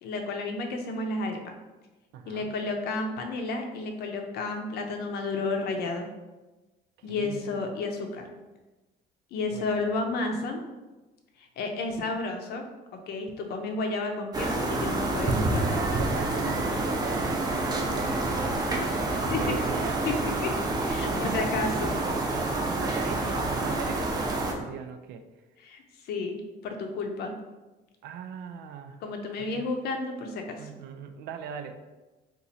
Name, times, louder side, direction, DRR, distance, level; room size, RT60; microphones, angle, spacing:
voice 1, 0.0-1.4 2.3-6.1 7.0-8.3 9.3-10.6 11.4-12.6 13.1-16.0 18.8-19.6 20.0-20.2 20.4-20.5 20.8-22.0 25.6-26.4 26.6-27.3 29.0-30.7, left 3 dB, 70° left, 4 dB, 0.6 m, -32 dB
voice 2, 2.1-2.6 7.0-7.5 9.5-9.9 15.4-20.0 21.0-21.6 22.0-25.2 28.0-29.0 29.4-29.7 30.6-31.7, right 7 dB, 80° right, 8 dB, 0.4 m, -39 dB
sound 1, 14.3-24.5, right 2 dB, 25° right, 0.6 m, -28 dB
2.9 x 2.5 x 4.0 m, 1.1 s
cardioid pair, 110°, 17 cm